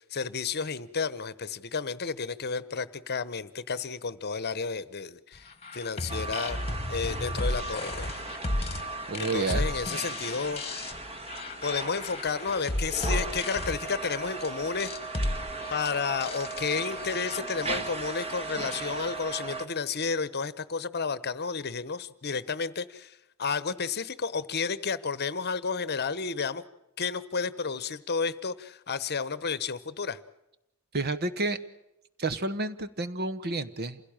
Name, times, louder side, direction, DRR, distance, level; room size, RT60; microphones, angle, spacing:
voice 1, 0.0-6.6 6.9-8.1 9.2-10.6 11.6-14.9 15.7-26.6 27.0-30.2, left 5 dB, 45° left, 17 dB, 1.0 m, -32 dB
sound 1, 5.5-17.4, left 1 dB, 30° left, 1.4 m, -34 dB
sound 2, 6.1-19.7, right 3 dB, 25° right, 1.8 m, -37 dB
voice 2, 9.1-9.7 30.9-31.6 32.2-34.0, right 2 dB, 45° right, 13 dB, 1.2 m, -30 dB
27.5 x 17.0 x 8.8 m, 0.87 s
head